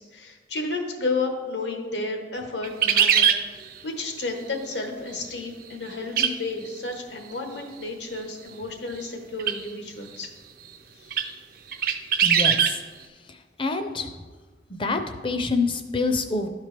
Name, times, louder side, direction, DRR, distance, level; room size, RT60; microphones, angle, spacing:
voice 1, 0.0-10.3 10.9-11.3, left 3 dB, 80° left, 4 dB, 1.1 m, -32 dB
sound 1, 2.6-3.4 6.2-6.3 6.7-6.8 9.4-9.6 10.2-10.3 11.1-11.3 11.7-12.7, right 8 dB, 50° right, 0.4 m, -20 dB
voice 2, 12.2-12.8 13.6-14.1 14.8-16.5, left 3 dB, 30° left, 8 dB, 0.5 m, -26 dB
12.5 x 4.4 x 3.3 m, 1.4 s
head